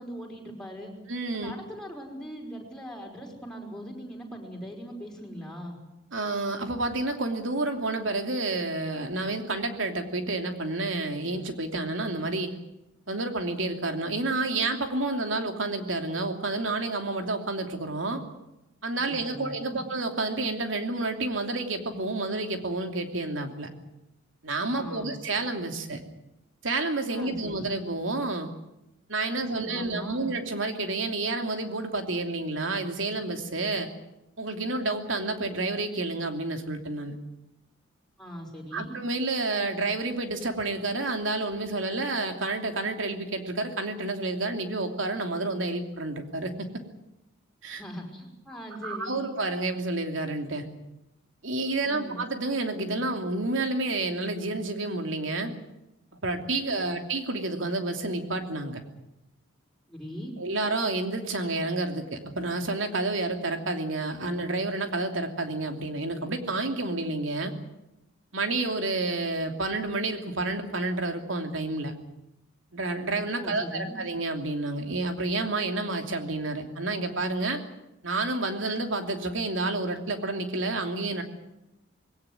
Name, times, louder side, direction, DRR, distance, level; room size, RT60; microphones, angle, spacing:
voice 1, 0.0-0.9 1.3-5.8 19.1-19.8 24.7-25.1 27.1-27.5 29.3-30.3 38.2-39.0 47.7-49.3 51.8-52.2 56.6-56.9 59.9-60.4 73.3-74.0, equal, 5° left, -1 dB, 5.2 m, -40 dB
voice 2, 1.1-1.5 6.1-12.5 13.1-18.2 18.8-23.7 24.4-26.0 26.6-28.5 29.1-33.9 34.4-37.1 38.7-46.7 47.6-47.8 48.8-50.6 51.4-55.5 56.2-58.8 60.4-67.5 68.3-71.9 72.7-77.6 78.0-81.2, right 2 dB, 75° right, 5 dB, 2.9 m, -30 dB
21.0 x 18.0 x 9.4 m, 0.92 s
head